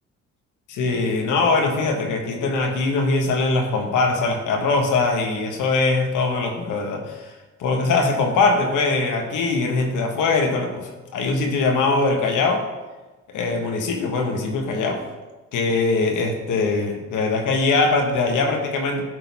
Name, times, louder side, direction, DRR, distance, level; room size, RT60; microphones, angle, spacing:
voice 1, 0.7-7.3 7.6-12.7 13.3-15.0 15.5-19.0, left 3 dB, 80° left, 3 dB, 1.3 m, -22 dB
10.5 x 4.0 x 4.1 m, 1.2 s
cardioid pair, 90°, 30 cm